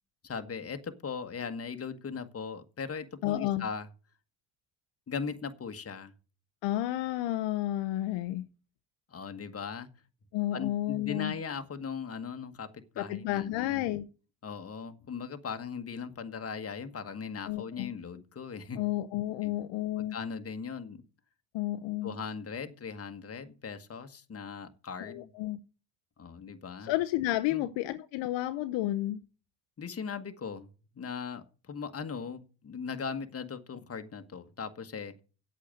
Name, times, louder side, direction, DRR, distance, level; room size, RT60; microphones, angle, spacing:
voice 1, 0.2-3.9 5.1-6.1 9.1-9.9 10.5-13.9 14.4-18.8 19.4-19.5 20.0-21.0 22.0-25.3 26.2-26.9 27.5-27.7 29.8-30.7 30.9-35.2, left 6 dB, 30° left, 1.5 m, -39 dB
voice 2, 3.2-3.7 6.6-8.4 10.3-11.3 13.0-14.1 17.5-17.9 18.8-20.2 21.5-22.1 25.0-25.6 26.8-29.2, left 15 dB, 65° left, 0.9 m, -31 dB
8.6 x 8.4 x 7.6 m
hypercardioid pair, 70°, 48 cm